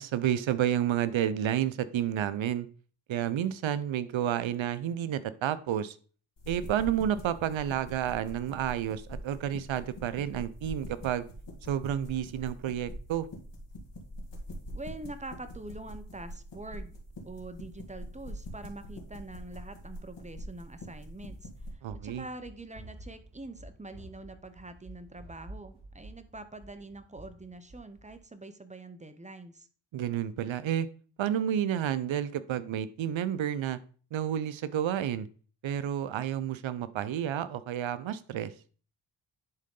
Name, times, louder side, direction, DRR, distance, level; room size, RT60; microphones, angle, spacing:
voice 1, 0.0-2.7 3.1-6.0 6.5-11.2 11.7-13.3 21.8-22.2 29.9-30.9 31.2-33.8 34.1-35.3 35.6-38.5, right 10 dB, 70° right, 14 dB, 0.7 m, -30 dB
sound 1, 6.4-21.7, equal, 60° left, 2.2 m, -44 dB
voice 2, 14.7-17.0 17.2-29.7, right 2 dB, 15° right, 10 dB, 0.7 m, -45 dB
Run, 21.2-28.2, right 1 dB, 55° right, 3.7 m, -50 dB
10.5 x 3.8 x 3.7 m, 0.41 s
cardioid pair, 85°, 48 cm